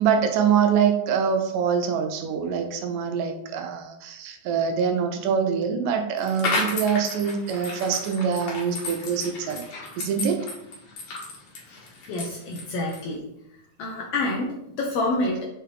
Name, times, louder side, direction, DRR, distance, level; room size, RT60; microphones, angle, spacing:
voice 1, 0.0-9.7 10.0-10.5, right 7 dB, 80° right, 6 dB, 2.1 m, -24 dB
sound 1, 6.2-13.1, left 3 dB, 60° left, 2.2 m, -33 dB
voice 2, 12.1-13.2 13.8-15.4, left 2 dB, 90° left, -1 dB, 1.3 m, -27 dB
6.6 x 4.6 x 3.3 m, 0.82 s
omnidirectional pair, 3.9 m